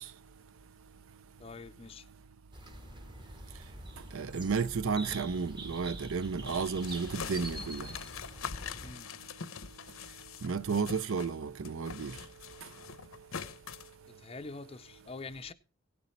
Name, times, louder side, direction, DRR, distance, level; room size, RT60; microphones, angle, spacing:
voice 1, 1.4-2.1 6.4-6.6 8.8-9.1 14.1-15.5, left 3 dB, 25° left, 0.5 m, -45 dB
sound 1, 2.5-8.9, right 1 dB, 20° right, 0.9 m, -45 dB
voice 2, 4.1-7.9 10.4-12.1, right 5 dB, 75° right, 0.6 m, -32 dB
sound 2, 6.5-11.4 11.6-13.9, left 6 dB, 80° left, 0.7 m, -43 dB
17.0 x 7.0 x 4.3 m
head